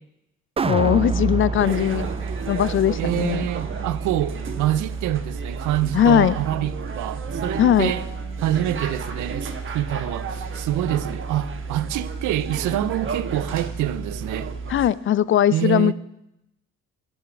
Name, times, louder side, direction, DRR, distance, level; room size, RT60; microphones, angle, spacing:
sound 1, 0.6-6.8 7.2-7.3, right 5 dB, 20° right, 0.4 m, -30 dB
voice 1, 0.7-2.1 2.5-3.5 5.9-6.4 7.6-7.9 14.7-15.9, left 10 dB, 45° left, 0.4 m, -19 dB
sound 2, 1.6-14.9, right 4 dB, 40° right, 1.3 m, -31 dB
voice 2, 3.0-8.1 8.4-14.5 15.5-15.9, right 13 dB, 80° right, 0.6 m, -26 dB
10.0 x 7.2 x 5.9 m
cardioid pair, 90°, 30 cm